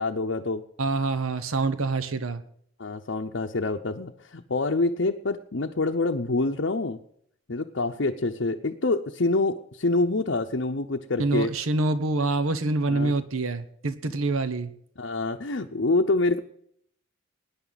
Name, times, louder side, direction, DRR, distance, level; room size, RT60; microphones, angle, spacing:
voice 1, 0.0-0.6 2.8-7.0 7.5-11.5 12.9-13.1 15.0-16.4, left 2 dB, 55° left, 1 dB, 0.8 m, -26 dB
voice 2, 0.8-2.4 11.2-14.7, right 3 dB, 75° right, 12 dB, 1.0 m, -26 dB
20.0 x 10.0 x 4.1 m, 0.67 s
head